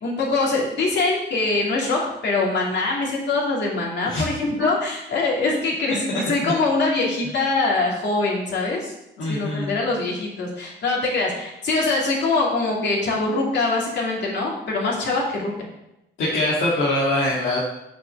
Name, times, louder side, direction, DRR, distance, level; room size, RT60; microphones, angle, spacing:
voice 1, 0.0-8.9 9.3-15.5, left 3 dB, 60° left, -3 dB, 2.7 m, -23 dB
voice 2, 4.1-4.7 6.4-6.5 9.2-9.8 16.2-17.6, left 1 dB, 90° left, -6 dB, 1.9 m, -23 dB
6.4 x 4.5 x 6.6 m, 0.88 s
cardioid pair, 90°, 20 cm